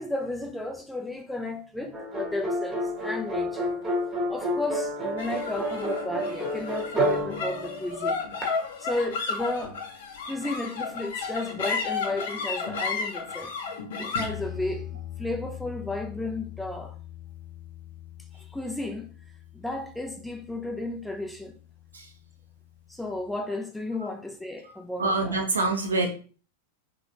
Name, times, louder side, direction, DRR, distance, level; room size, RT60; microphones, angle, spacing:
voice 1, 0.0-3.7 4.3-8.2 8.8-9.8 10.3-13.5 14.0-14.9 15.2-16.9 18.3-19.1 19.5-21.5 22.9-25.4, left 2 dB, 5° left, 0.4 m, -33 dB
sound 1, 1.9-8.4, equal, 20° right, 1.0 m, -30 dB
sound 2, 5.2-21.7, left 5 dB, 55° left, 0.6 m, -35 dB
voice 2, 25.0-26.1, right 3 dB, 70° right, 0.6 m, -25 dB
3.0 x 2.9 x 2.5 m
figure-of-eight pair, 90°, 0 cm